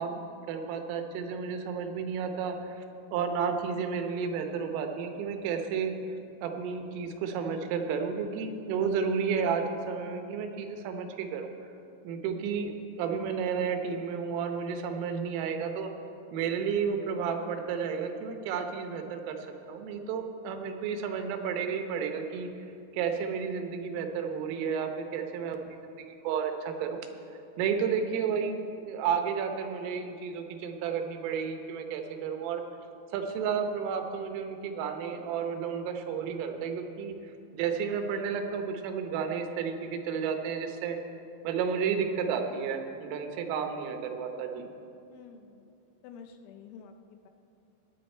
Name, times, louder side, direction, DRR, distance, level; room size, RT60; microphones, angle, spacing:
voice 1, 0.0-2.9 3.1-6.2 6.4-11.5 12.1-15.9 16.3-19.4 19.7-22.7 22.9-25.6 26.0-27.0 27.6-32.6 33.1-37.2 37.5-41.0 41.5-44.7, right 6 dB, 90° right, 5 dB, 3.6 m, -32 dB
voice 2, 45.1-45.7 46.0-47.3, left 6 dB, 80° left, 5 dB, 3.0 m, -49 dB
18.5 x 9.6 x 4.4 m, 2.7 s
omnidirectional pair, 5.7 m